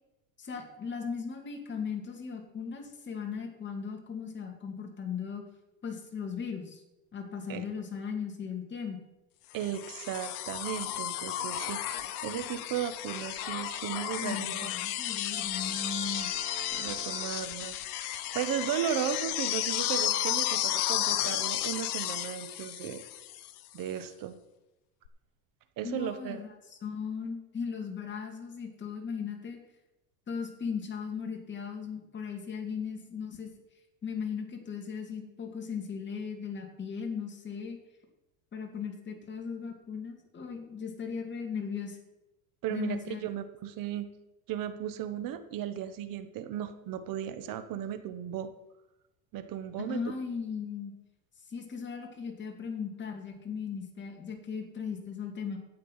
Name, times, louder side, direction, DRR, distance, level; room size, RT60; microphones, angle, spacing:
voice 1, 0.4-5.4 5.8-6.8 7.1-9.0 14.2-16.3 25.8-29.6 30.3-33.5 34.0-37.8 38.5-42.0 42.7-43.2 49.9-50.9 51.5-55.6, left 6 dB, 25° left, 2 dB, 2.5 m, -37 dB
voice 2, 9.5-11.8 12.2-14.7 16.7-23.0 23.7-24.3 25.8-26.4 42.6-44.1 44.5-48.5 49.3-50.0, right 10 dB, 50° right, 10 dB, 1.3 m, -35 dB
sound 1, 9.6-23.6 25.1-25.2, left 13 dB, 75° left, 1.1 m, -33 dB
Brass instrument, 15.3-18.0, right 6 dB, 10° right, 0.6 m, -47 dB
12.0 x 8.4 x 5.7 m, 0.97 s
supercardioid pair, 125°, 44 cm